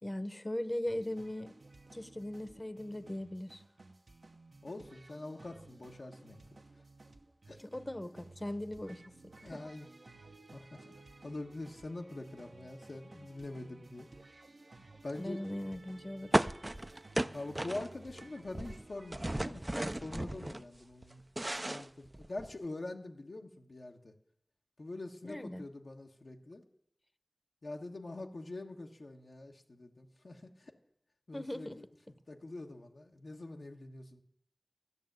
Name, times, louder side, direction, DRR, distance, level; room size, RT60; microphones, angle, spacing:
voice 1, 0.0-1.5 1.9-3.6 7.6-9.7 15.2-16.4 25.2-25.6 31.3-31.8, left 1 dB, 30° left, 0.9 m, -39 dB
sound 1, 0.9-19.3, right 2 dB, 75° right, 0.9 m, -56 dB
voice 2, 4.6-6.4 7.5-7.6 9.4-9.9 10.5-14.1 15.0-15.4 17.3-21.2 21.6-24.1 24.8-26.6 27.6-30.7 31.3-31.9 32.3-34.2, left 2 dB, 80° left, 1.2 m, -44 dB
sound 2, 16.3-18.2 18.5-20.6 21.0-22.6, right 1 dB, 30° right, 0.4 m, -34 dB
13.5 x 6.5 x 9.3 m
wide cardioid pair, 45°, 0 cm